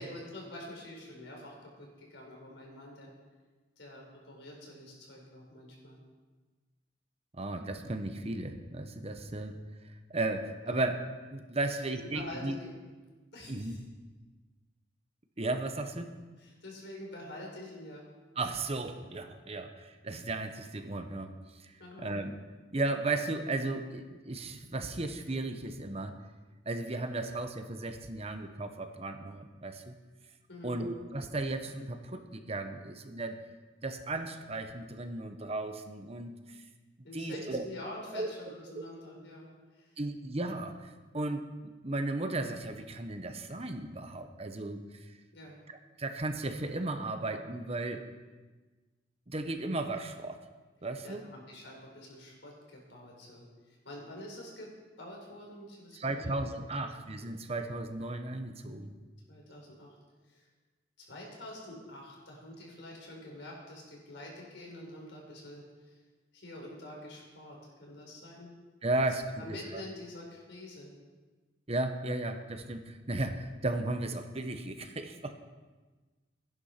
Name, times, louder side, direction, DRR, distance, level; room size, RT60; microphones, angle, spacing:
voice 1, 0.0-3.1 3.8-6.0 10.7-10.9 11.7-12.7 13.3-13.8 16.4-18.0 21.8-22.2 30.5-30.8 37.0-40.0 45.3-45.6 51.0-54.7 55.0-56.3 56.8-56.9 59.3-60.0 60.3-60.5 61.0-66.0 66.3-68.5 69.3-70.9, left 1 dB, 80° left, -1 dB, 4.8 m, -47 dB
voice 2, 7.3-9.6 10.1-11.0 11.3-12.6 13.5-13.8 15.4-16.1 18.4-21.3 22.0-22.3 22.7-26.2 26.7-29.9 30.6-33.4 33.8-36.4 37.1-37.6 38.1-38.3 40.0-41.4 41.8-44.8 46.0-48.1 49.3-50.4 50.8-51.2 55.9-58.9 68.8-69.8 71.7-75.3, right 2 dB, 35° right, 7 dB, 1.0 m, -35 dB
15.0 x 11.0 x 5.8 m, 1.3 s
head